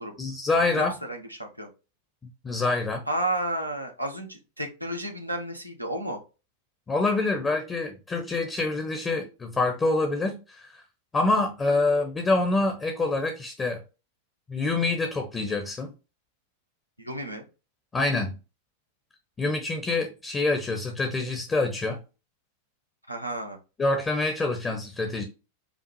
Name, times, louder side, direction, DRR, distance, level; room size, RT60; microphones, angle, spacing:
voice 1, 0.2-1.0 2.4-3.0 6.9-10.8 11.1-13.8 14.5-15.9 17.9-18.3 19.4-22.0 23.8-25.2, left 3 dB, 15° left, 0.8 m, -26 dB
voice 2, 0.7-1.7 3.1-6.2 17.0-17.5 23.1-23.6, right 1 dB, 90° right, 0.8 m, -32 dB
5.2 x 2.4 x 3.0 m
figure-of-eight pair, 90°, 0 cm